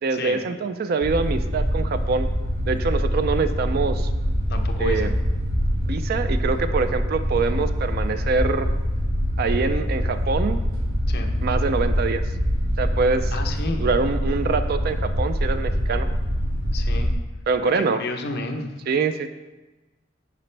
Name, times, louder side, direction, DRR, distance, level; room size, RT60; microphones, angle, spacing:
voice 1, 0.0-2.3 2.7-4.1 4.8-5.1 5.9-8.7 9.4-10.6 11.4-12.2 12.8-13.3 13.8-16.1 17.5-18.0 18.9-19.3, right 4 dB, 45° right, 10 dB, 0.4 m, -24 dB
sound 1, 1.0-17.1, equal, 75° right, 1.8 m, -24 dB
voice 2, 4.5-5.1 11.1-11.3 13.3-13.9 16.7-17.1 17.6-18.7, left 2 dB, 50° left, 4 dB, 0.8 m, -31 dB
9.9 x 5.1 x 3.3 m, 1.1 s
head